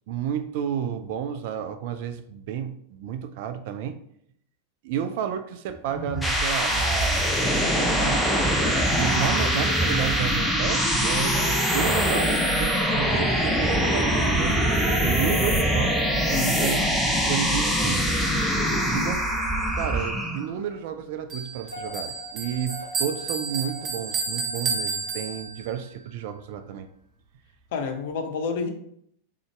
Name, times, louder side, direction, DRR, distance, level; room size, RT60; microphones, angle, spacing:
voice 1, 0.1-4.0 4.8-7.2 7.8-8.2 8.9-16.0 16.3-18.1 18.9-19.2 19.7-26.9, right 9 dB, 50° right, 8 dB, 0.4 m, -31 dB
sound 1, 5.8-25.5, equal, 90° left, 0.7 m, -45 dB
sound 2, 5.9-20.5, equal, 5° left, 0.6 m, -23 dB
voice 2, 16.3-16.7 27.7-28.7, left 5 dB, 55° left, 5 dB, 0.7 m, -29 dB
Bell, 21.3-25.8, right 4 dB, 30° right, 1.0 m, -31 dB
3.9 x 3.6 x 3.3 m, 0.70 s
figure-of-eight pair, 90°, 0 cm